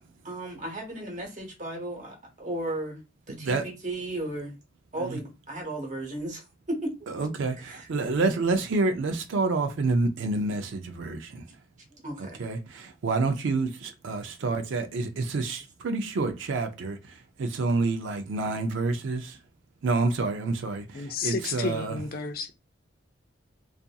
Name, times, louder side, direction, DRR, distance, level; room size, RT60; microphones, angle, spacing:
voice 1, 0.2-3.0 3.3-4.6 4.9-6.9 7.6-7.9 11.9-12.4, right 1 dB, 40° right, 1.0 m, -35 dB
voice 2, 3.3-3.6 5.0-5.2 7.1-11.4 12.2-19.4 19.8-22.0, right 3 dB, 75° right, 0.4 m, -28 dB
voice 3, 20.9-22.5, left 4 dB, 45° left, 0.3 m, -31 dB
2.7 x 2.5 x 2.2 m
head